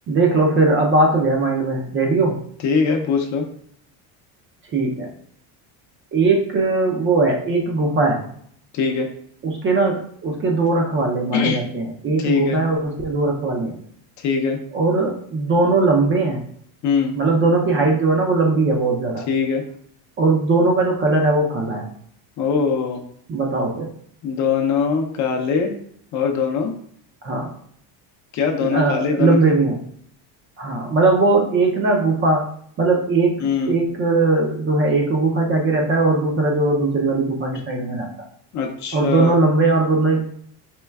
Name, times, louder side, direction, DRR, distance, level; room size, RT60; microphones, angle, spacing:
voice 1, 0.1-2.4 4.7-5.1 6.1-8.3 9.4-13.7 14.7-16.4 17.2-19.3 20.2-21.9 23.3-23.9 27.2-27.5 28.6-29.8 30.6-32.5 32.8-33.4 33.7-38.1 38.9-40.2, right 3 dB, 30° right, 1 dB, 0.4 m, -19 dB
voice 2, 2.6-3.5 8.7-9.1 11.3-11.6 12.2-12.6 14.2-14.6 16.8-17.2 19.3-19.7 22.4-23.0 24.2-25.7 26.1-26.7 28.3-29.4 33.4-33.8 38.5-39.3, left 5 dB, 45° left, 2 dB, 0.5 m, -21 dB
4.4 x 3.0 x 2.2 m, 0.63 s
cardioid pair, 155°, 41 cm